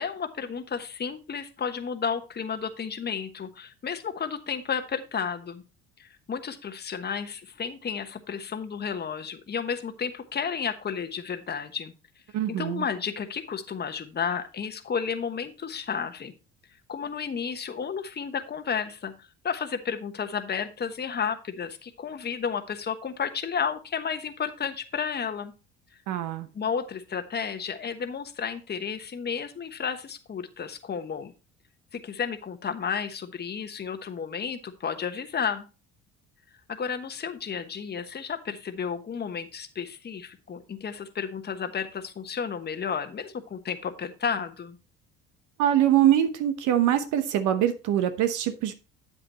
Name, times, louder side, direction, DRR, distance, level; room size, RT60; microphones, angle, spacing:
voice 1, 0.0-5.6 6.0-11.9 12.6-16.3 16.9-25.5 26.5-31.3 31.9-35.7 36.7-44.8, left 6 dB, 30° left, 8 dB, 1.2 m, -32 dB
voice 2, 12.3-12.8 26.1-26.5 45.6-48.7, right 11 dB, 65° right, 9 dB, 1.0 m, -23 dB
8.5 x 8.2 x 2.9 m, 0.30 s
hypercardioid pair, 65°, 33 cm